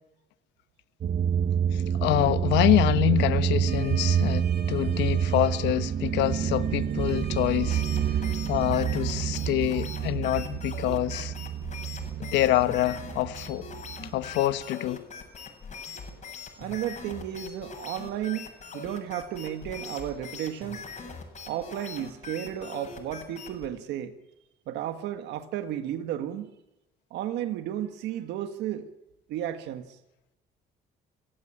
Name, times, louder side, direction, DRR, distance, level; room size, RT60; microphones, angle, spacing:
sound 1, 1.0-14.6, right 8 dB, 45° right, 0.8 m, -28 dB
voice 1, 1.7-11.3 12.2-13.7 14.1-15.0, left 15 dB, 90° left, 1.1 m, -26 dB
sound 2, 3.7-8.7, right 7 dB, 70° right, 3.4 m, -47 dB
sound 3, 7.6-23.7, left 5 dB, 40° left, 7.8 m, -42 dB
voice 2, 16.6-20.9 21.5-24.1 24.7-26.5 27.1-28.9 29.3-30.0, right 11 dB, 85° right, 1.7 m, -33 dB
27.0 x 16.5 x 8.8 m
cardioid pair, 90°, 18 cm